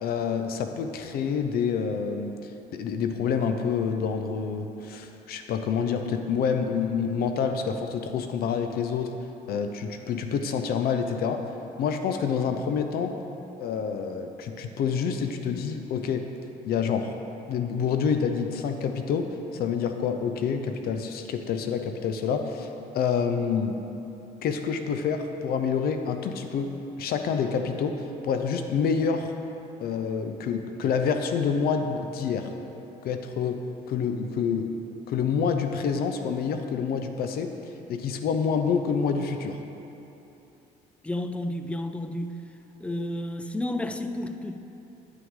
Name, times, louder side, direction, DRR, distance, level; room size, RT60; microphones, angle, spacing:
voice 1, 0.0-2.3 2.7-9.1 9.5-11.4 11.8-13.1 13.6-16.2 16.7-17.1 17.5-19.3 19.5-22.7 22.9-23.7 24.4-26.7 27.0-27.9 28.2-29.3 29.8-32.5 33.0-33.6 33.9-34.7 35.1-37.5 37.9-39.6, left 6 dB, 65° left, 6 dB, 0.6 m, -27 dB
voice 2, 41.0-42.4 42.8-44.7, left 1 dB, 5° left, 8 dB, 0.4 m, -31 dB
9.6 x 6.0 x 3.7 m, 3.0 s
cardioid pair, 110°, 17 cm